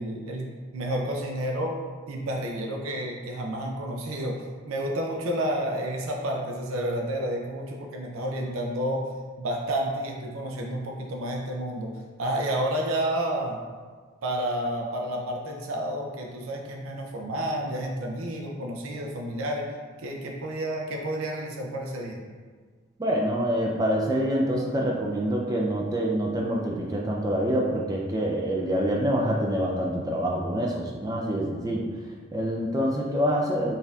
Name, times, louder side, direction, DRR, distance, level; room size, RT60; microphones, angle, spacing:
voice 1, 0.0-1.8 2.1-9.1 9.4-13.6 14.2-19.7 20.0-22.2, right 1 dB, 85° right, 0 dB, 0.5 m, -30 dB
voice 2, 23.0-32.0 32.3-33.7, equal, 20° right, -2 dB, 0.3 m, -26 dB
4.1 x 2.7 x 3.5 m, 1.5 s
head